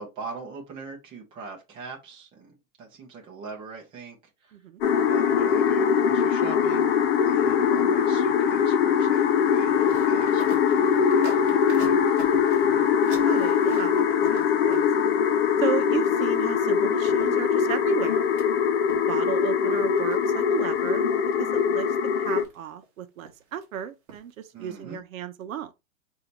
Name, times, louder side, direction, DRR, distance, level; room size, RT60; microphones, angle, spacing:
voice 1, 0.0-4.5 5.1-6.9 7.2-12.1 24.5-25.0, right 4 dB, 15° right, 0.8 m, -42 dB
sound 1, 4.8-22.4, left 7 dB, 50° left, 0.6 m, -22 dB
sound 2, 9.1-15.2 16.7-16.8 17.1-18.4 18.9-19.5 19.7-20.2 20.7-21.0 21.3-22.0 22.4-22.9 23.2-23.6 24.1-24.3 24.6-24.7, right 5 dB, 30° right, 1.2 m, -44 dB
voice 2, 13.1-14.9 15.6-18.3 19.1-21.1 21.4-21.9 22.2-25.7, right 9 dB, 80° right, 0.8 m, -33 dB
5.0 x 2.7 x 3.0 m
supercardioid pair, 170°, 40 cm